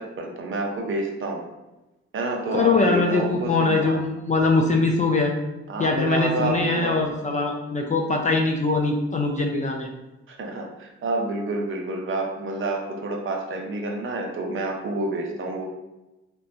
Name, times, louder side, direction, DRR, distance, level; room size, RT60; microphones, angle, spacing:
voice 1, 0.0-1.4 2.1-4.0 5.7-7.0 10.3-15.6, right 2 dB, 40° right, 2 dB, 0.6 m, -28 dB
voice 2, 2.5-5.3 5.8-9.9, left 3 dB, 25° left, 1 dB, 0.4 m, -22 dB
3.0 x 2.2 x 2.6 m, 1.0 s
hypercardioid pair, 60°, 33 cm